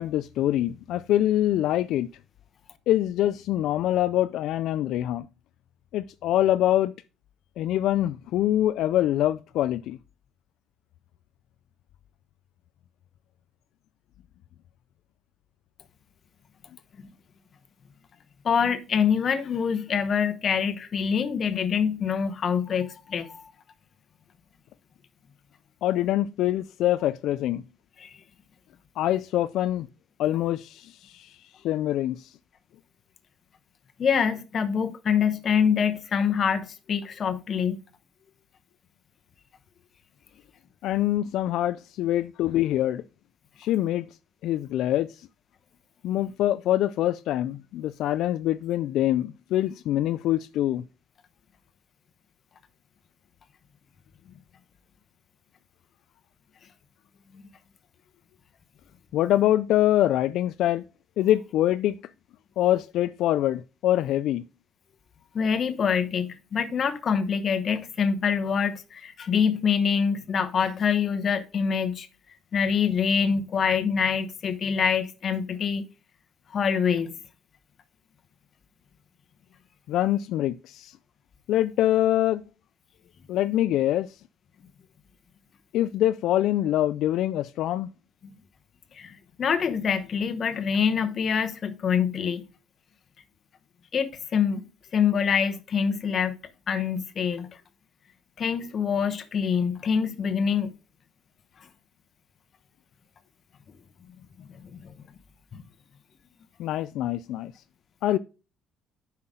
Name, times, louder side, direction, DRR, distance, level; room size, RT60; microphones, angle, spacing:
voice 1, 0.0-2.1 2.9-5.3 5.9-6.9 7.6-10.0 25.8-27.6 29.0-29.9 30.2-32.4 40.8-43.0 43.6-44.1 44.4-45.3 46.0-50.8 59.1-60.8 61.2-62.0 62.6-64.4 79.9-81.0 81.5-82.4 83.3-84.2 85.7-87.9 106.6-107.5 108.0-108.2, left 13 dB, 75° left, 0.3 m, -24 dB
voice 2, 18.4-23.5 28.0-28.1 34.0-37.8 57.3-57.4 65.3-72.1 72.5-75.8 76.5-77.1 88.9-92.4 93.9-94.7 94.9-96.4 96.7-97.5 98.4-100.7 104.4-104.9 105.5-105.6, left 7 dB, 40° left, 1.0 m, -25 dB
9.7 x 5.8 x 3.7 m
cardioid pair, 130°, 0 cm